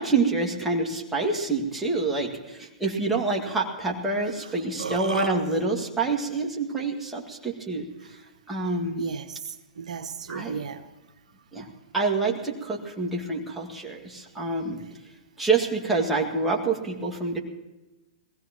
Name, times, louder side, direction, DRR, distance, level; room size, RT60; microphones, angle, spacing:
voice 1, 0.0-7.9 8.5-9.1 10.3-10.6 11.5-11.7 11.9-14.8 15.4-17.4, right 3 dB, 5° right, 2.2 m, -27 dB
Burping eructation, 4.2-4.3 4.5-5.3, right 5 dB, 85° right, 1.4 m, -31 dB
voice 2, 4.4-5.0 9.0-10.8, right 6 dB, 70° right, 0.8 m, -36 dB
22.5 x 16.0 x 3.0 m
hypercardioid pair, 120°, 4 cm